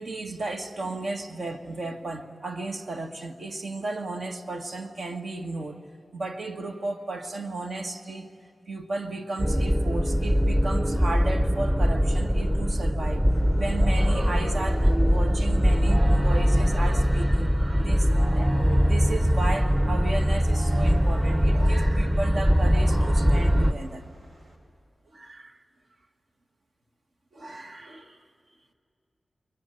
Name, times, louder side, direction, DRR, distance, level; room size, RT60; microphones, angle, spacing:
voice 1, 0.0-5.8 6.1-8.3 8.7-13.3 13.5-24.0 25.1-25.6 27.3-28.2, right 2 dB, 70° right, 1.7 m, -34 dB
sound 1, 9.4-23.7, equal, 15° right, 0.8 m, -22 dB
Wild animals, 13.3-24.6, right 1 dB, 85° right, 3.9 m, -43 dB
29.0 x 22.0 x 9.2 m
wide cardioid pair, 80°, 0 cm